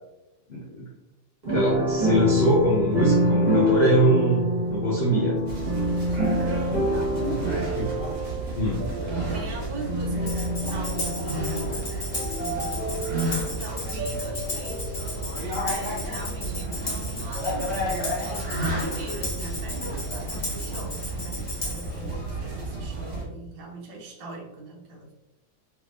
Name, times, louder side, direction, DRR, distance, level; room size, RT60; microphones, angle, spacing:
voice 1, 0.5-0.9 1.5-5.4 7.3-7.9 8.5-8.9, right 1 dB, 65° left, -3 dB, 0.6 m, -23 dB
sound 1, 1.4-15.1 15.4-15.5, equal, 25° right, 1.4 m, -27 dB
sound 2, 5.5-23.2, right 1 dB, 60° right, 2.0 m, -31 dB
voice 2, 6.4-7.6 9.3-25.1, right 2 dB, 80° right, -2 dB, 1.6 m, -41 dB
Tambourine, 10.3-22.0, left 2 dB, 30° left, 0.7 m, -35 dB
4.6 x 3.4 x 2.4 m, 0.99 s
omnidirectional pair, 2.0 m